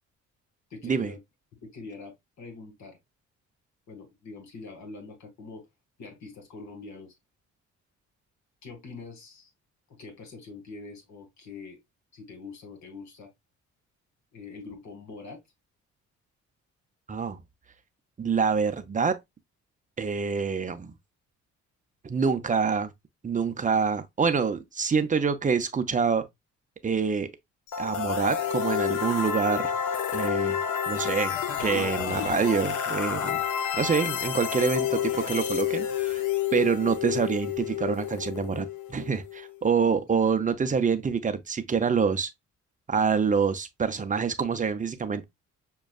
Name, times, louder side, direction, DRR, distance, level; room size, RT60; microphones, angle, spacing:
voice 1, 0.7-1.2 1.5-3.0 3.9-5.7 6.0-7.1 8.6-9.5 9.9-11.8 12.1-13.3 14.3-15.4 39.9-40.0, left 4 dB, 65° left, 1.8 m, -44 dB
voice 2, 17.1-17.4 18.2-19.2 20.0-20.9 22.0-22.9 23.2-26.3 26.8-27.3 27.8-29.7 30.1-30.6 30.9-31.3 31.6-33.4 33.7-36.2 36.5-42.3 42.9-45.2, right 5 dB, 25° right, 0.6 m, -26 dB
sound 1, 27.7-39.5, left 9 dB, 80° left, 0.8 m, -29 dB
6.2 x 2.3 x 2.3 m
cardioid pair, 90°, 30 cm